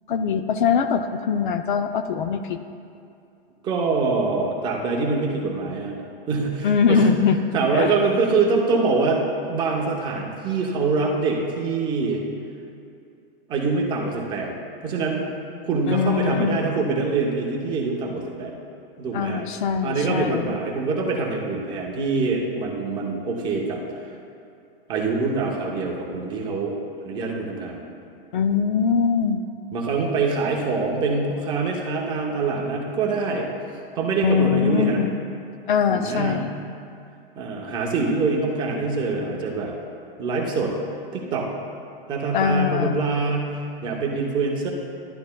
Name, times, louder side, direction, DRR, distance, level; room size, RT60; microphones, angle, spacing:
voice 1, 0.1-2.6 6.6-7.4 7.7-7.9 15.9-16.6 19.1-20.5 28.3-29.4 34.2-35.1 35.7-36.5 42.3-43.0, left 6 dB, 60° left, 8 dB, 0.5 m, -22 dB
voice 2, 3.6-5.9 6.3-7.1 7.5-12.2 13.5-14.5 14.8-15.3 15.6-18.6 19.0-19.4 19.8-23.8 24.9-26.8 27.0-27.8 29.7-33.5 34.0-35.0 35.9-36.4 37.4-39.8 40.2-40.7 41.1-41.5 42.1-44.7, right 4 dB, 15° right, -2 dB, 0.7 m, -24 dB
11.5 x 10.5 x 2.2 m, 2.5 s
supercardioid pair, 165°, 30 cm